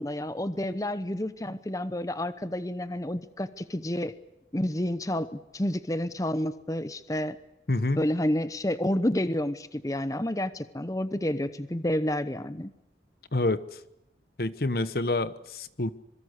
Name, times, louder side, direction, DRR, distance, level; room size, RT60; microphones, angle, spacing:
voice 1, 0.0-4.1 4.5-7.4 8.0-12.7, left 1 dB, 20° left, 13 dB, 0.9 m, -29 dB
voice 2, 7.7-8.0 13.3-13.6 14.4-15.9, left 2 dB, 55° left, 14 dB, 1.1 m, -27 dB
26.0 x 23.0 x 8.1 m, 0.85 s
head